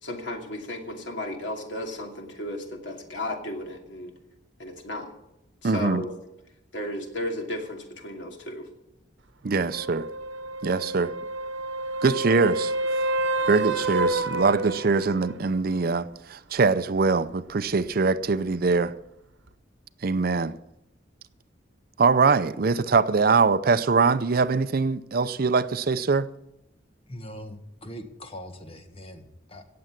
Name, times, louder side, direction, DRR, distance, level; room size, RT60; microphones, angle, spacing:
voice 1, 0.0-4.2 4.6-5.1 5.6-6.1 6.7-8.7, left 1 dB, 75° left, 2.6 m, -34 dB
voice 2, 5.6-6.0 9.4-10.1 10.6-11.1 12.0-12.7 13.5-18.9 20.0-20.5 22.0-26.3, right 4 dB, 50° right, 0.5 m, -23 dB
sound 1, 9.7-15.4 19.5-19.6, right 2 dB, 85° right, 1.1 m, -29 dB
voice 3, 27.1-29.6, equal, 30° left, 1.5 m, -41 dB
17.5 x 7.6 x 7.4 m
head